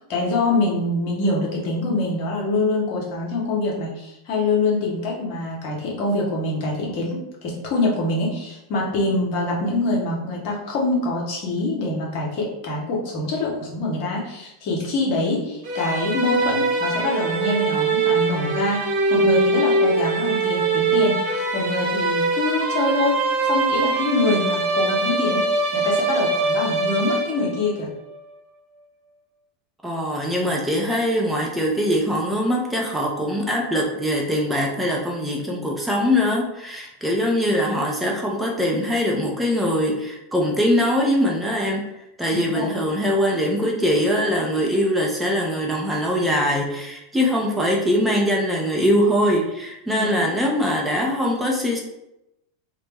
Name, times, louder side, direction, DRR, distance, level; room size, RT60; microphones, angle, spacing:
voice 1, 0.1-18.8 19.1-23.2 23.4-27.9 42.3-42.8 50.0-50.4, left 2 dB, 55° left, -2 dB, 0.8 m, -24 dB
sound 1, 15.6-27.7, right 3 dB, 55° right, 0.8 m, -22 dB
voice 2, 29.8-41.8 42.2-51.8, equal, 5° right, -2 dB, 0.5 m, -22 dB
2.1 x 2.0 x 3.3 m, 0.87 s
hypercardioid pair, 90°, 0 cm